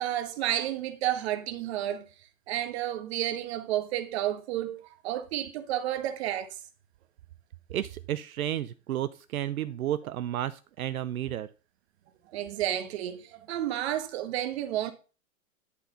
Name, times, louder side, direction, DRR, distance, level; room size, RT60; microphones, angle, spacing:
voice 1, 0.0-2.1 2.5-6.6 12.3-14.9, right 12 dB, 50° right, 1.5 m, -31 dB
voice 2, 7.7-11.5, right 12 dB, 80° right, 0.7 m, -32 dB
11.0 x 4.4 x 5.6 m
hypercardioid pair, 135°, 42 cm